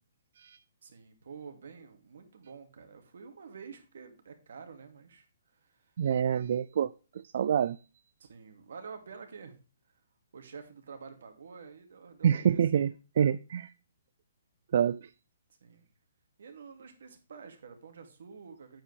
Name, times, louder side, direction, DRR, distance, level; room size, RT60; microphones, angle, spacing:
voice 1, 0.8-5.3 5.6-5.9 8.2-9.5 10.3-12.9 15.6-15.9 16.4-18.8, right 5 dB, 70° right, 2.5 m, -48 dB
voice 2, 6.0-6.9 7.3-7.8 12.2-13.7 14.7-15.1, right 8 dB, 50° right, 0.3 m, -26 dB
8.6 x 8.3 x 3.4 m
hypercardioid pair, 170°, 0 cm